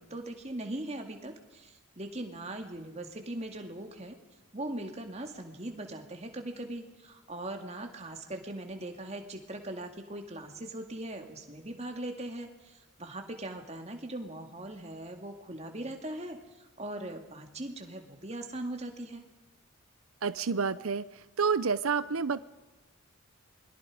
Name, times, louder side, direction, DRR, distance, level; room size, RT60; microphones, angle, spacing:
voice 1, 0.0-4.2 4.5-19.2, right 1 dB, 30° right, 5 dB, 2.3 m, -40 dB
voice 2, 20.2-21.1 21.4-22.4, right 5 dB, 75° right, 14 dB, 0.7 m, -28 dB
28.0 x 22.0 x 5.1 m, 1.1 s
head